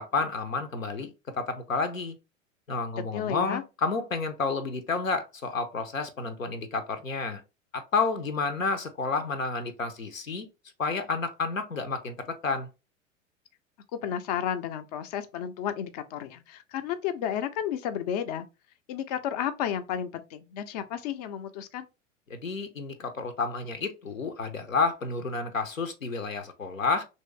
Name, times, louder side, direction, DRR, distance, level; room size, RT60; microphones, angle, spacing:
voice 1, 0.0-2.2 2.7-7.4 7.7-10.5 10.8-12.7 22.3-27.0, left 4 dB, 85° left, 0.6 m, -30 dB
voice 2, 3.1-3.6 14.0-18.5 18.9-21.9, left 9 dB, 35° left, 0.4 m, -32 dB
3.0 x 2.7 x 3.1 m
figure-of-eight pair, 90°, 39 cm